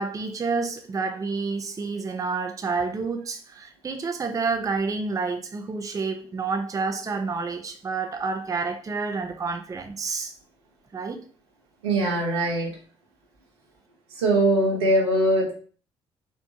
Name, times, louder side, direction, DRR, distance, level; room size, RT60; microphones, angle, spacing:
voice 1, 0.0-10.3 10.9-11.2, right 4 dB, 25° right, 0.5 m, -29 dB
voice 2, 11.8-12.8 14.1-15.5, right 1 dB, 85° right, 1.0 m, -22 dB
4.4 x 2.2 x 2.7 m
hypercardioid pair, 45°, 14 cm